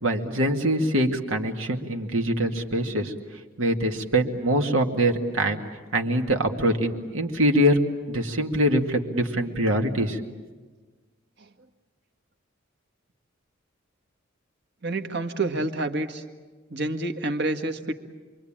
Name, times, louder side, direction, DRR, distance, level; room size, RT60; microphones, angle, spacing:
voice 1, 0.0-3.1 3.6-5.6 5.9-7.8 8.1-10.2, right 1 dB, 85° right, 3 dB, 2.2 m, -24 dB
voice 2, 14.8-16.2 16.7-17.9, right 2 dB, 60° right, 6 dB, 1.7 m, -28 dB
28.0 x 23.0 x 8.9 m, 1.4 s
head